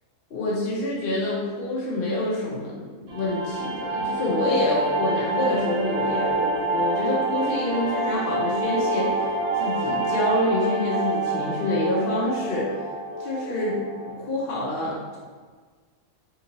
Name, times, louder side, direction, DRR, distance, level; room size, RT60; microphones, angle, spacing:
voice 1, 0.3-9.3 9.6-12.8 13.2-15.2, left 1 dB, 55° left, -5 dB, 0.6 m, -27 dB
sound 1, 3.1-14.1, right 2 dB, 60° right, 0.8 m, -27 dB
3.7 x 2.7 x 2.7 m, 1.5 s
omnidirectional pair, 1.4 m